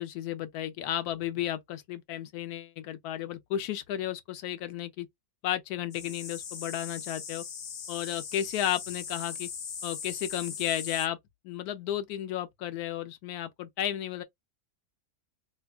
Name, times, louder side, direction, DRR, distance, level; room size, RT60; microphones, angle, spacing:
voice 1, 0.0-5.1 5.4-7.4 7.9-9.5 9.8-11.2 11.4-14.2, left 11 dB, 80° left, 1.1 m, -33 dB
sound 1, 5.9-11.1, left 7 dB, 55° left, 0.7 m, -39 dB
3.4 x 2.9 x 2.2 m
omnidirectional pair, 1.6 m